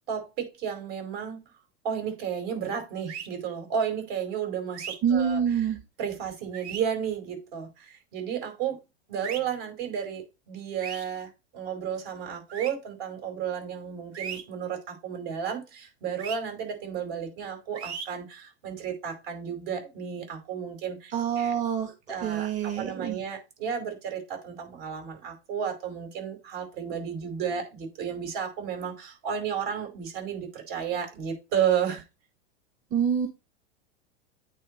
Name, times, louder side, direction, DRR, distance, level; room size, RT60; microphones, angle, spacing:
voice 1, 0.1-1.4 1.8-5.4 6.0-8.8 9.1-21.5 22.1-32.0, right 8 dB, 55° right, 4.9 m, -32 dB
sound 1, 3.1-3.3 4.7-5.0 6.5-6.8 9.2-9.4 10.8-11.0 12.5-12.7 14.1-14.4 16.2-16.4 17.7-18.1, right 7 dB, 85° right, 1.8 m, -36 dB
voice 2, 5.0-5.8 21.1-21.9 22.2-23.2 32.9-33.3, right 8 dB, 20° right, 1.2 m, -26 dB
9.0 x 3.7 x 4.3 m
supercardioid pair, 145°, 33 cm